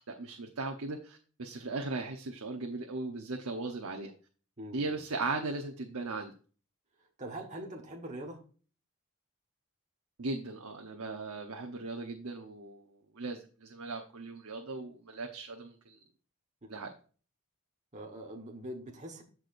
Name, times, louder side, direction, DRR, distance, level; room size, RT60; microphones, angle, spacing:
voice 1, 0.2-4.1 4.7-6.3 10.2-16.0 16.7-16.9, right 3 dB, 75° right, 2 dB, 1.0 m, -38 dB
voice 2, 4.6-5.0 7.2-8.4 16.6-16.8 17.9-19.2, right 1 dB, 35° right, 0 dB, 1.3 m, -43 dB
14.0 x 4.9 x 2.6 m, 0.39 s
head